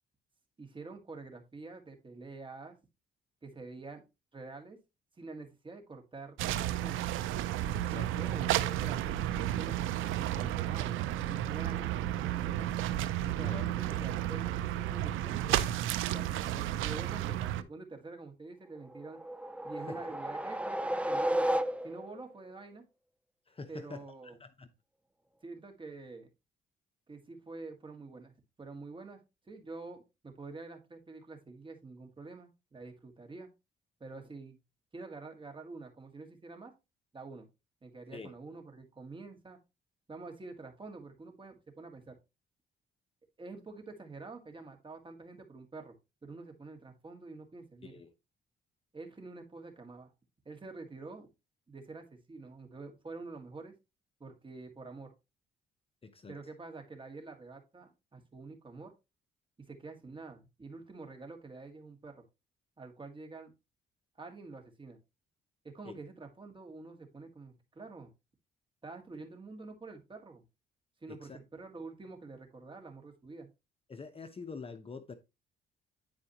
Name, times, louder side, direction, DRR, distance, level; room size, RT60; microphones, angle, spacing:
voice 1, 0.6-2.8 3.4-4.0 4.3-4.8 5.2-7.0 7.9-9.8 10.1-12.7 13.2-15.6 16.1-19.2 19.6-21.5 21.8-22.8 23.7-24.4 25.4-26.3 27.1-28.3 28.6-29.2 29.5-33.5 34.0-34.6 34.9-36.7 37.1-37.5 37.8-39.6 40.1-42.2 43.4-46.0 46.2-48.0 48.9-50.1 50.5-51.3 51.7-53.7 54.2-55.1 56.3-58.9 59.6-62.2 62.8-63.5 64.2-65.0 65.6-68.1 68.8-70.4 71.0-73.5, right 3 dB, 25° right, 1.8 m, -47 dB
sound 1, 6.4-17.6, right 13 dB, 85° right, 0.5 m, -32 dB
voice 2, 7.7-8.3 13.4-13.8 19.9-20.1 23.5-24.7 38.1-38.3 47.8-48.1 56.0-56.4 65.8-66.0 71.1-71.4 73.9-75.1, left 4 dB, 30° left, 0.8 m, -46 dB
sound 2, 18.9-22.2, right 1 dB, 5° right, 0.4 m, -33 dB
9.6 x 4.7 x 2.9 m
cardioid pair, 90°, 20 cm